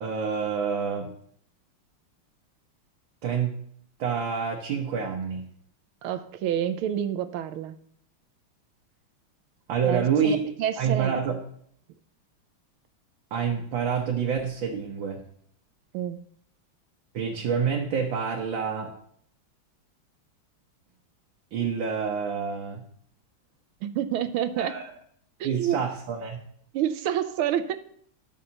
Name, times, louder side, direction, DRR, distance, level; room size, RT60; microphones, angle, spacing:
voice 1, 0.0-1.1 3.2-3.6 4.0-5.5 9.7-10.4 10.8-11.4 13.3-15.2 17.1-18.9 21.5-22.8 24.6-24.8 25.4-26.4, right 6 dB, 65° right, 0 dB, 1.8 m, -27 dB
voice 2, 6.0-7.8 9.8-11.1 15.9-16.2 23.8-24.7 25.4-25.8 26.7-27.8, right 10 dB, 85° right, 11 dB, 1.5 m, -28 dB
18.5 x 6.6 x 2.9 m, 0.64 s
omnidirectional pair, 2.3 m